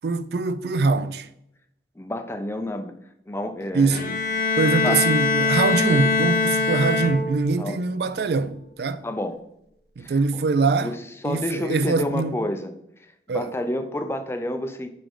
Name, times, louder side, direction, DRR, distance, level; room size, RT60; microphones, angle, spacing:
voice 1, 0.0-1.3 3.7-4.1 4.6-9.0 10.0-10.9 11.2-12.4 13.3-13.5, right 4 dB, 65° right, 0.4 m, -23 dB
voice 2, 2.0-2.9 3.3-4.0 4.8-5.0 7.6-7.8 9.0-9.4 10.0-10.1 10.8-12.7 13.3-14.9, left 1 dB, 15° left, 0.5 m, -29 dB
Bowed string instrument, 3.9-7.6, left 4 dB, 50° left, 0.7 m, -23 dB
5.0 x 4.9 x 3.8 m
head